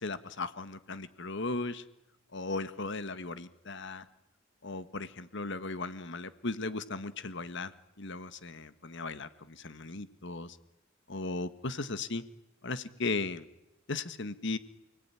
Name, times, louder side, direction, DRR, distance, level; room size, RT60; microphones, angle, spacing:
voice 1, 0.0-1.8 2.3-4.0 4.6-7.7 8.0-10.6 11.1-12.2 12.6-13.4 13.9-14.6, left 3 dB, 60° left, 13 dB, 1.6 m, -37 dB
29.5 x 19.5 x 9.9 m, 0.93 s
head